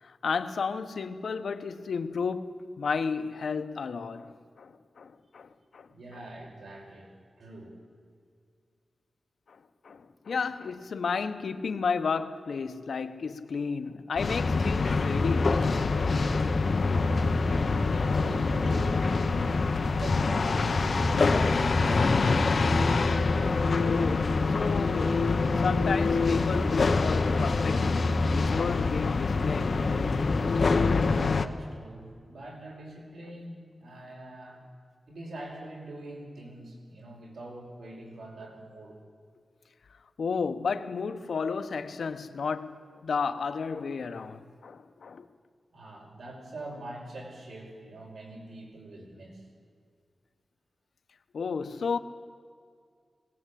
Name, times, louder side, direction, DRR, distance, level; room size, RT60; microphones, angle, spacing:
voice 1, 0.0-5.9 9.5-9.6 9.8-15.9 23.8-30.1 40.2-45.2 51.3-52.0, left 5 dB, 85° left, 1.1 m, -33 dB
voice 2, 5.9-7.8 16.9-19.4 19.8-23.0 31.1-34.6 35.1-39.0 45.7-49.5, right 1 dB, 85° right, 5.5 m, -44 dB
sound 1, 14.2-31.5, left 3 dB, 55° left, 1.0 m, -25 dB
20.5 x 18.0 x 8.5 m
wide cardioid pair, 115°, 0 cm